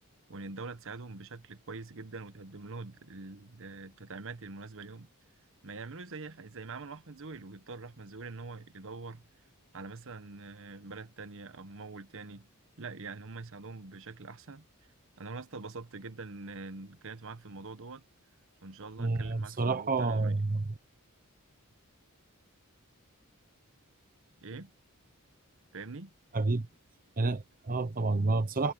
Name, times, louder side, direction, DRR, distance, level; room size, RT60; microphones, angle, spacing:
voice 1, 0.3-5.1 5.6-9.3 9.7-12.5 12.8-14.7 15.2-18.0 18.6-20.4 24.4-24.7 25.7-26.1, right 3 dB, 60° right, 1.1 m, -44 dB
voice 2, 19.0-20.6 26.3-26.7 27.2-28.7, right 3 dB, 40° right, 0.8 m, -29 dB
head